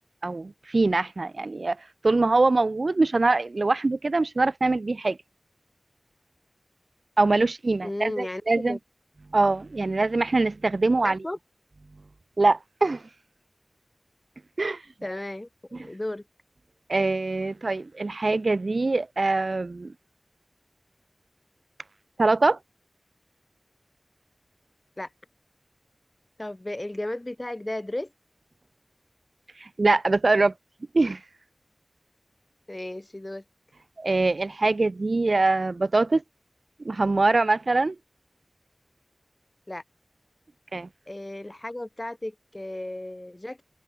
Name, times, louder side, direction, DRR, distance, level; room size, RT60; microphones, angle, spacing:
voice 1, 0.2-1.8 2.0-5.2 7.2-8.8 9.3-11.2 12.4-13.0 14.6-14.8 16.9-19.9 22.2-22.6 29.6-30.5 30.9-31.2 34.0-36.2 36.8-38.0 40.7-40.9, right 3 dB, 80° right, 0.5 m, -23 dB
voice 2, 7.8-8.8 11.0-11.4 15.0-16.2 25.0-25.1 26.4-28.1 32.7-33.4 39.7-39.8 41.1-43.6, left 1 dB, 35° left, 7.7 m, -34 dB
wide cardioid pair, 50°, 0 cm